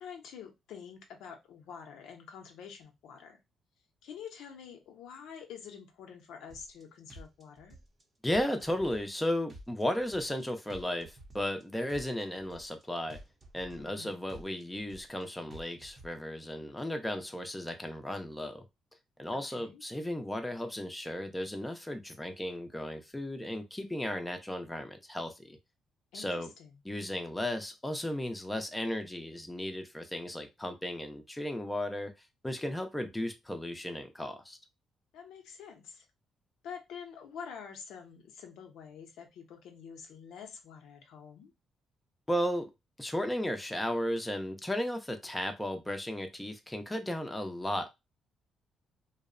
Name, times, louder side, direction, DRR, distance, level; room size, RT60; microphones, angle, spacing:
voice 1, 0.0-3.4 4.0-7.8 13.8-14.1 19.3-19.8 26.1-26.8 35.1-36.1 36.6-41.5, left 7 dB, 85° left, 0.6 m, -47 dB
sound 1, 6.5-6.8 7.1-8.0 8.3-9.2 9.5-10.4 10.7-11.6 11.9-12.8 13.1-14.0 14.3-15.2 15.5-16.1, right 1 dB, 35° right, 0.6 m, -51 dB
voice 2, 8.2-13.2 13.5-18.7 19.2-25.6 26.1-26.5 26.8-32.1 32.4-34.6 42.3-42.7 43.0-47.9, left 1 dB, 10° left, 0.5 m, -35 dB
2.7 x 2.0 x 2.5 m
cardioid pair, 90°, 0 cm